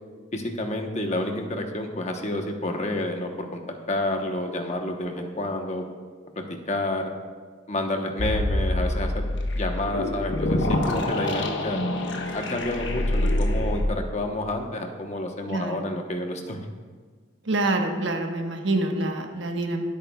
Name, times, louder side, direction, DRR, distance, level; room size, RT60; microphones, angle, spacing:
voice 1, 0.3-3.6 3.9-5.8 6.7-7.1 7.7-11.8 12.3-16.6, left 1 dB, 35° left, 3 dB, 1.0 m, -29 dB
sound 1, 8.2-13.8, left 1 dB, 65° left, 1.1 m, -26 dB
voice 2, 17.5-19.8, right 2 dB, 65° right, 3 dB, 1.2 m, -26 dB
23.5 x 8.4 x 2.3 m, 1.5 s
head